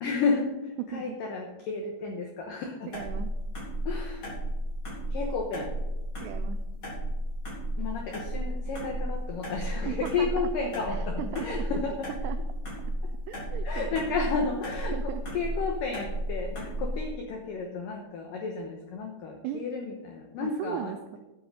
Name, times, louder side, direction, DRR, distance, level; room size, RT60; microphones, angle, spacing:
voice 1, 0.0-2.9 3.9-4.3 5.1-5.7 7.8-12.1 13.6-14.9 15.3-21.2, left 4 dB, 85° left, 2 dB, 1.9 m, -32 dB
voice 2, 0.8-1.2 2.9-3.3 6.2-6.6 9.9-11.5 12.1-12.4 13.3-14.0 14.9-15.2 19.4-19.7 20.4-21.2, right 10 dB, 90° right, 10 dB, 2.4 m, -37 dB
sound 1, 2.9-17.1, equal, 30° left, 3.8 m, -33 dB
10.5 x 8.7 x 6.4 m, 1.1 s
omnidirectional pair, 5.5 m